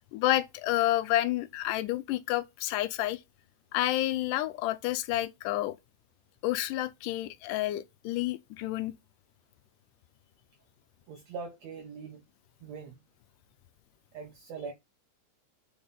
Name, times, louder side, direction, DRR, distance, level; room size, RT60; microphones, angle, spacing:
voice 1, 0.1-3.2 3.7-5.8 6.4-8.9, left 15 dB, 85° left, 2.3 m, -29 dB
voice 2, 11.1-12.2 12.6-13.0 14.1-14.7, right 5 dB, 65° right, 2.1 m, -41 dB
7.1 x 4.7 x 5.4 m
omnidirectional pair, 3.7 m